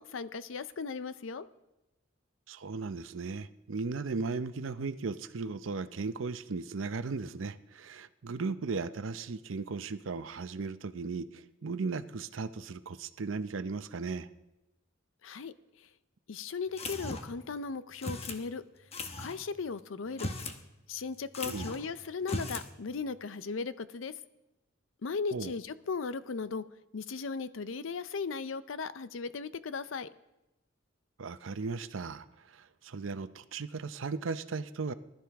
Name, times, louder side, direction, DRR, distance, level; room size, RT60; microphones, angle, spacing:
voice 1, 0.0-1.5 15.2-15.9 16.3-18.6 19.2-20.3 20.9-24.1 25.0-26.6 26.9-30.1, left 4 dB, 85° left, 14 dB, 0.6 m, -37 dB
voice 2, 2.5-14.3 21.5-21.7 25.3-25.5 31.2-34.9, right 4 dB, 80° right, 12 dB, 0.6 m, -36 dB
sound 1, 16.8-17.4 18.0-18.4 18.9-19.4 20.1-20.6 20.9-21.0 21.3-21.9 22.2-22.7, left 2 dB, 30° left, 1.0 m, -37 dB
20.0 x 12.0 x 3.5 m, 0.98 s
head